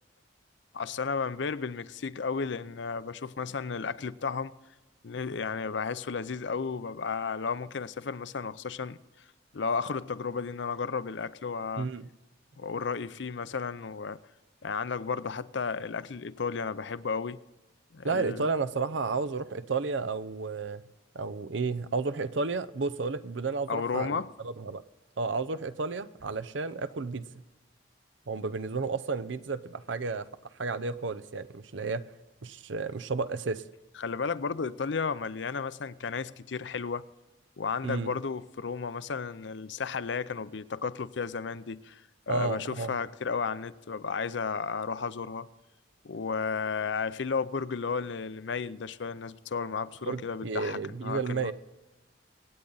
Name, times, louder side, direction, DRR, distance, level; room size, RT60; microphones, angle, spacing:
voice 1, 0.7-4.5 5.0-9.0 9.5-11.9 12.6-14.2 14.6-17.4 17.9-18.5 23.7-24.3 34.0-37.0 37.6-45.5 46.0-51.5, left 5 dB, 75° left, 0.6 m, -33 dB
voice 2, 18.0-20.8 21.1-24.8 25.2-27.4 28.3-30.3 30.6-32.1 32.4-33.6 37.8-38.1 42.3-43.0 50.1-51.5, right 4 dB, 80° right, 0.7 m, -32 dB
25.5 x 8.8 x 4.0 m
head